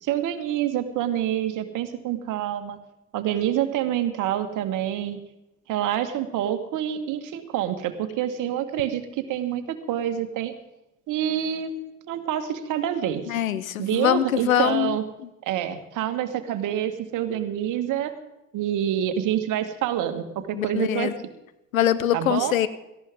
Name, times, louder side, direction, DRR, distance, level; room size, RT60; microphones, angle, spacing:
voice 1, 0.0-2.8 3.1-5.2 5.7-9.0 9.3-9.6 9.9-10.5 11.1-11.8 12.1-13.4 13.8-15.0 15.5-18.1 18.5-21.1 22.1-22.5, right 10 dB, 50° right, 8 dB, 1.8 m, -27 dB
voice 2, 13.3-15.0 20.5-21.1 21.7-22.7, left 11 dB, 80° left, 15 dB, 0.9 m, -23 dB
17.5 x 15.0 x 3.7 m, 0.92 s
hypercardioid pair, 65°, 40 cm